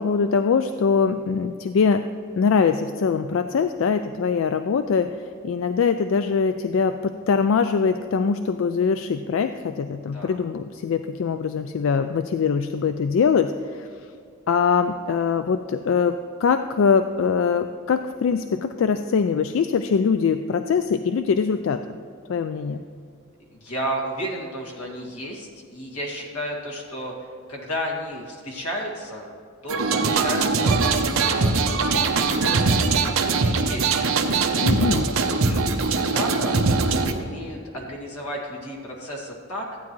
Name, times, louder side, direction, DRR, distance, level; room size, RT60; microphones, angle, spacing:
voice 1, 0.0-2.0 2.4-13.9 14.5-22.0 22.3-22.8 34.6-35.1, left 5 dB, 60° left, 9 dB, 0.3 m, -22 dB
voice 2, 23.5-29.3 29.6-34.0 34.5-35.1 35.4-36.6 36.8-39.7, equal, 85° left, -1 dB, 2.2 m, -33 dB
sound 1, 29.7-37.1, right 4 dB, 70° right, 0.8 m, -21 dB
14.5 x 9.4 x 3.1 m, 2.3 s
head